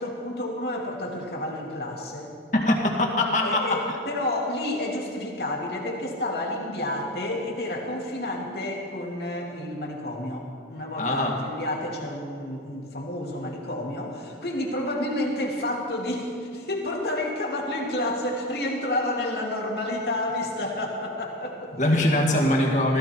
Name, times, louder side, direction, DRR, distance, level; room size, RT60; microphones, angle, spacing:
voice 1, 0.0-2.3 3.4-21.8 22.1-22.6, left 1 dB, 65° left, -1 dB, 2.4 m, -30 dB
voice 2, 2.5-3.8 11.0-11.4 21.8-23.0, left 1 dB, 45° left, 1 dB, 1.9 m, -22 dB
16.5 x 15.5 x 4.5 m, 2.2 s
head